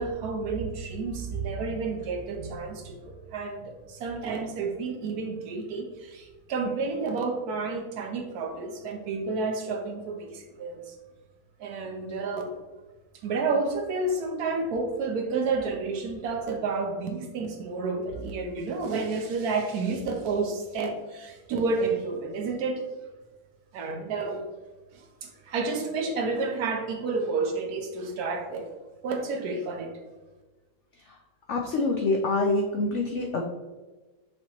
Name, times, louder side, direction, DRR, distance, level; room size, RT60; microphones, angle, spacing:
voice 1, 0.0-10.9 11.6-12.6 13.2-22.8 23.7-24.4 24.9-28.6 29.0-29.9, right 3 dB, 70° right, 3 dB, 1.1 m, -30 dB
voice 2, 31.5-33.4, left 2 dB, 85° left, 1 dB, 0.6 m, -26 dB
6.2 x 2.9 x 2.9 m, 1.2 s
omnidirectional pair, 1.8 m